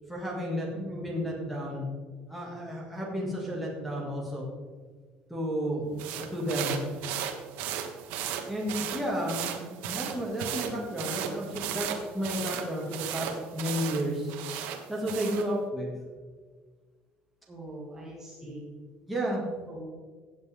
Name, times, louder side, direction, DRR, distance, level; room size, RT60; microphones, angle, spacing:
voice 1, 0.1-1.8 2.3-4.5 5.3-6.8 8.5-14.3 14.6-15.9 19.1-19.5, equal, ahead, -2 dB, 2.3 m, -32 dB
voice 2, 0.7-1.1 17.5-18.6 19.7-19.8, right 1 dB, 15° right, -4 dB, 2.0 m, -42 dB
sound 1, 6.0-15.5, right 9 dB, 90° right, 1.2 m, -36 dB
16.5 x 7.9 x 3.7 m, 1.5 s
cardioid pair, 175°, 3 cm